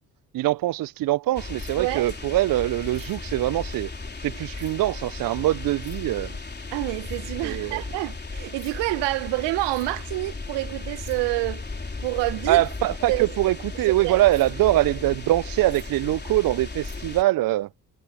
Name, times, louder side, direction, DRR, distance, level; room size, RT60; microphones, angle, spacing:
voice 1, 0.3-3.9 4.2-6.4 7.4-7.8 12.5-17.7, right 16 dB, 55° right, 0.6 m, -23 dB
sound 1, 1.3-17.2, left 3 dB, 25° left, 3.8 m, -35 dB
voice 2, 1.8-2.1 6.7-11.6 12.0-12.6 13.1-13.3 14.0-14.2, right 21 dB, 75° right, 1.2 m, -27 dB
hypercardioid pair, 55°, 43 cm